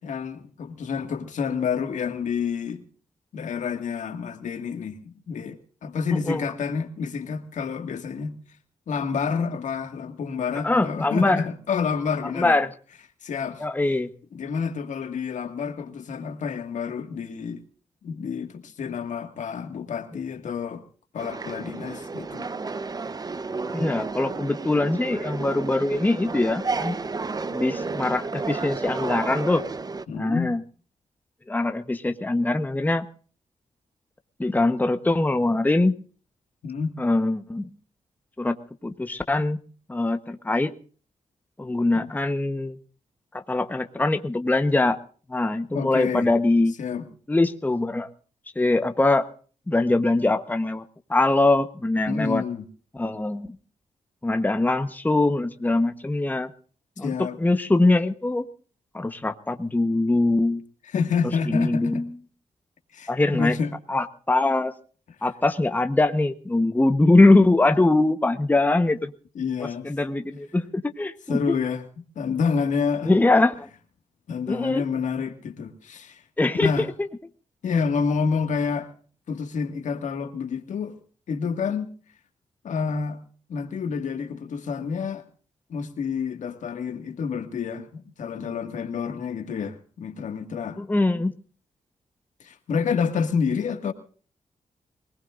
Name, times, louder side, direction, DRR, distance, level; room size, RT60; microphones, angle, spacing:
voice 1, 0.0-2.8 3.3-8.4 8.9-12.6 13.2-13.6 14.3-17.6 18.0-20.8 21.1-22.5 30.1-30.5 36.6-37.0 42.0-42.1 45.7-46.3 46.8-47.1 52.1-52.7 57.0-57.4 60.8-62.0 62.9-63.7 69.4-69.9 71.3-71.8 72.2-73.1 74.3-76.2 76.5-76.9 77.6-78.9 79.3-81.0 81.3-81.9 82.6-83.2 83.5-85.2 85.7-90.8 92.4-93.9, left 6 dB, 80° left, 1.9 m, -28 dB
voice 2, 10.6-11.4 12.3-12.7 13.6-14.1 23.7-27.0 27.5-29.6 30.1-30.6 31.5-33.0 34.4-36.0 37.0-37.7 38.4-38.6 38.8-39.6 39.9-40.7 41.6-42.8 43.3-45.0 45.3-46.7 47.3-48.1 48.6-49.3 49.7-50.8 51.1-52.4 52.9-53.5 54.2-56.5 57.0-58.5 58.9-60.6 61.5-62.1 63.1-63.6 63.9-64.7 65.2-69.1 69.6-71.4 73.0-73.7 74.5-74.8 76.4-77.1 90.8-91.3, left 2 dB, 15° left, 1.0 m, -22 dB
sound 1, 21.2-30.1, right 4 dB, 30° right, 0.8 m, -32 dB
24.5 x 19.0 x 2.5 m
cardioid pair, 95°, 13 cm